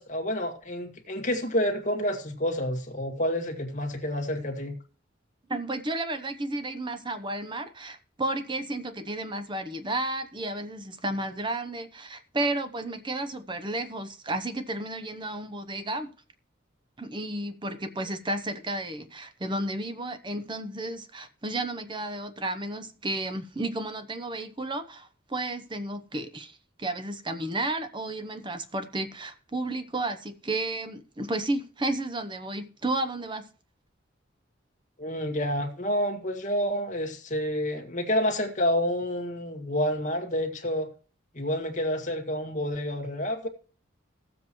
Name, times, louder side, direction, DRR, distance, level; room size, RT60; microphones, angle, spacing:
voice 1, 0.0-4.8 35.0-40.9 41.3-43.5, equal, 40° left, 1.9 m, -29 dB
voice 2, 5.5-16.1 17.0-33.5, right 2 dB, 25° right, 0.8 m, -32 dB
17.5 x 7.6 x 3.0 m
head